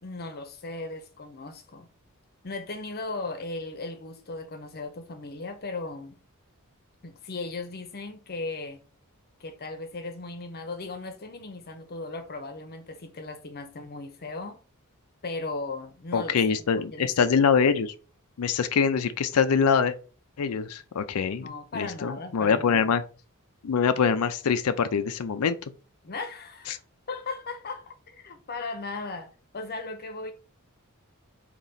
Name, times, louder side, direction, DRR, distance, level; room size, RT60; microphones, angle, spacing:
voice 1, 0.0-1.9 2.4-6.2 7.0-8.8 9.4-14.6 15.2-16.3 16.8-17.1 21.4-22.9 26.0-26.8 27.1-30.3, left 3 dB, 45° left, 0.8 m, -37 dB
voice 2, 16.1-17.9 18.4-19.9 20.4-21.5 21.7-23.0 23.6-25.6 26.7-26.8, left 6 dB, 80° left, 0.4 m, -24 dB
4.1 x 2.9 x 3.9 m
head